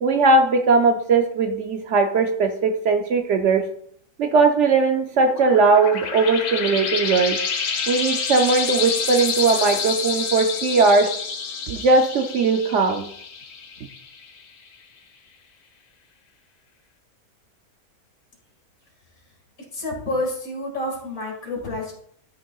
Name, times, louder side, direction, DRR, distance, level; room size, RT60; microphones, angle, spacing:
voice 1, 0.0-3.7 4.2-7.4 7.9-11.1 11.7-13.1, right 3 dB, 65° right, 6 dB, 0.8 m, -19 dB
sound 1, 5.2-14.4, left 5 dB, 85° left, 1.5 m, -28 dB
voice 2, 19.7-21.9, left 2 dB, 70° left, 0 dB, 2.5 m, -28 dB
12.0 x 6.3 x 2.3 m, 0.67 s
omnidirectional pair, 1.6 m